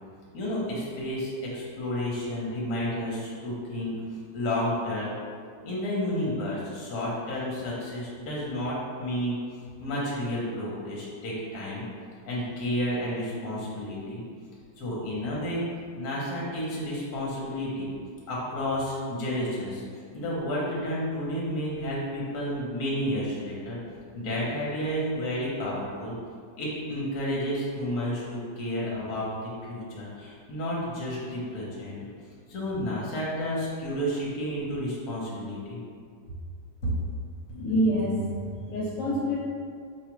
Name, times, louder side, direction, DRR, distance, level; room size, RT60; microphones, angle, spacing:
voice 1, 0.3-3.9 4.3-5.2 5.6-9.4 9.8-11.8 12.2-14.2 14.8-15.6 16.0-17.9 18.3-19.8 20.1-23.8 24.1-26.1 26.6-32.0 32.5-35.8 36.8-36.9, equal, 60° left, -6 dB, 1.4 m, -31 dB
voice 2, 37.5-39.4, equal, 85° left, -5 dB, 1.3 m, -27 dB
5.0 x 2.4 x 3.0 m, 2.1 s
omnidirectional pair, 1.9 m